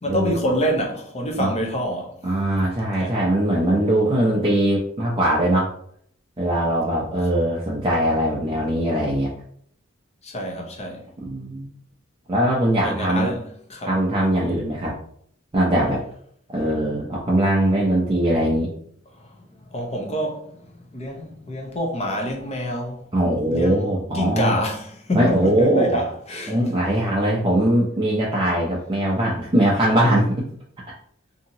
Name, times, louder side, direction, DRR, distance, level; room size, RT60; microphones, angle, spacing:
voice 1, 0.0-2.1 3.0-3.2 10.2-11.0 12.8-13.9 19.1-19.4 19.7-23.1 23.5-26.6, equal, 35° left, 0.7 m, -27 dB
voice 2, 2.2-5.7 6.4-9.3 11.2-11.7 12.3-13.4 13.9-14.9 15.5-16.0 16.5-18.7 23.1-24.5 25.1-26.0 26.5-30.5, right 1 dB, 25° right, 0.5 m, -21 dB
2.7 x 2.7 x 2.7 m
head